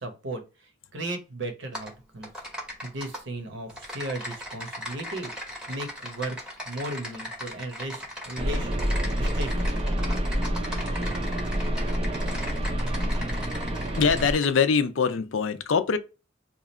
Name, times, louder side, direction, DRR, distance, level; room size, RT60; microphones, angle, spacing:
voice 1, 0.0-2.3 2.8-5.3 5.7-6.4 6.6-8.7 9.2-9.8, right 2 dB, 65° right, 0.8 m, -36 dB
Typing, 1.7-1.9 2.2-3.2 3.7-14.5, equal, 5° right, 0.8 m, -38 dB
sound 1, 8.4-14.3, equal, 30° right, 0.5 m, -28 dB
voice 2, 14.0-16.0, left 5 dB, 75° left, 0.5 m, -23 dB
2.9 x 2.4 x 4.2 m
head